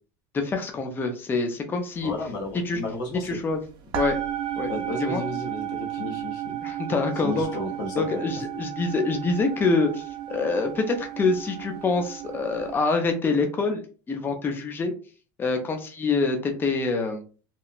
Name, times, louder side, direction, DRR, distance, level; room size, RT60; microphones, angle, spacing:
voice 1, 0.3-2.1 2.6-2.8 3.2-3.6 3.9-4.2 4.6-4.7 5.0-5.2 6.6-7.5 8.0-13.8 14.1-14.9 15.4-17.2, left 3 dB, 20° left, 4 dB, 0.5 m, -26 dB
voice 2, 2.0-3.4 4.7-6.6 7.2-8.4, left 2 dB, 65° left, 0 dB, 0.9 m, -33 dB
sound 1, 2.0-2.2 2.5-3.5 3.9-12.7, right 11 dB, 45° right, 0.5 m, -33 dB
2.9 x 2.1 x 2.4 m, 0.37 s
supercardioid pair, 135°, 11 cm